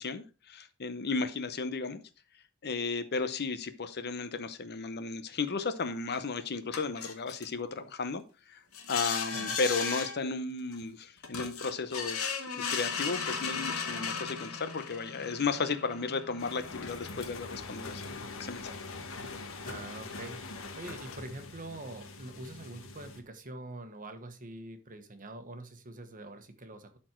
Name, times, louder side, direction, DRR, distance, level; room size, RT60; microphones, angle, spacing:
voice 1, 0.0-2.0 2.6-8.6 8.9-12.2 12.5-18.8, left 4 dB, 50° left, 11 dB, 0.8 m, -34 dB
sound 1, 6.1-6.2 6.7-7.5 8.7-10.2 10.7-10.8 11.2-17.4, left 6 dB, 85° left, 1.8 m, -36 dB
sound 2, 16.4-23.2, left 3 dB, 65° left, 1.4 m, -43 dB
voice 2, 19.6-27.0, right 2 dB, 40° right, 8 dB, 1.2 m, -45 dB
12.0 x 4.4 x 4.5 m, 0.33 s
head